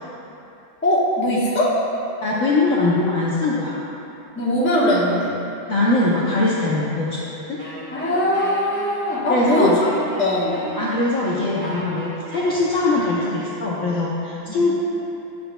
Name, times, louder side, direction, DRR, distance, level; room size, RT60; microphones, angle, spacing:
voice 1, 0.8-1.7 4.4-5.3 7.9-9.9 10.2-10.7 14.5-14.7, left 1 dB, 10° left, -7 dB, 0.6 m, -20 dB
voice 2, 2.2-3.8 5.7-7.2 7.5-7.6 9.3-9.8 10.8-14.7, left 2 dB, 60° left, -7 dB, 0.9 m, -21 dB
Wind instrument woodwind instrument, 7.6-13.6, right 1 dB, 50° right, 1.7 m, -37 dB
10.0 x 6.8 x 2.2 m, 2.8 s
omnidirectional pair, 2.2 m